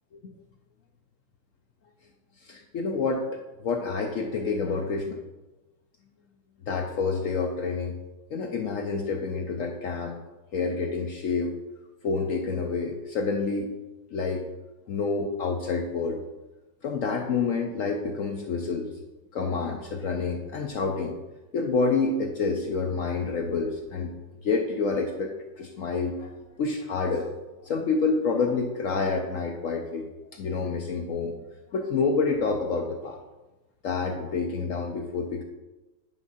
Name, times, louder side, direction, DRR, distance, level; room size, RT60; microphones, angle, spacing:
voice 1, 2.4-5.2 6.7-7.9 8.3-10.2 10.5-11.5 12.0-13.7 14.1-14.4 14.9-16.2 16.8-18.9 19.3-21.1 21.5-24.1 24.4-25.3 25.6-26.3 26.6-27.3 27.6-31.4 31.7-33.2 33.8-35.4, left 4 dB, 75° left, 3 dB, 0.7 m, -28 dB
9.0 x 3.5 x 5.6 m, 1.1 s
omnidirectional pair, 2.0 m